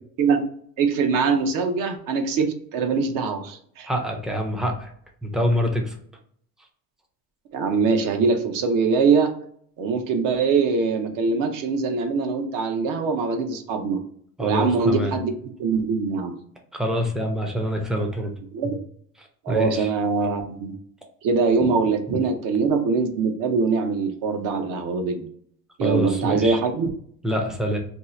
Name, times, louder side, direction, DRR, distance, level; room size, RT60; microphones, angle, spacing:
voice 1, 0.8-3.9 7.5-9.4 9.8-14.0 14.4-16.4 18.5-18.8 19.4-20.7 21.2-25.3 25.8-26.9, right 4 dB, 60° right, 6 dB, 0.7 m, -23 dB
voice 2, 3.9-4.9 5.2-6.0 14.4-15.1 16.7-18.3 18.6-18.7 19.2-19.9 21.6-21.7 22.1-22.2 25.8-26.6 27.2-27.8, equal, ahead, 2 dB, 0.4 m, -26 dB
2.7 x 2.3 x 4.1 m, 0.63 s
cardioid pair, 150°, 37 cm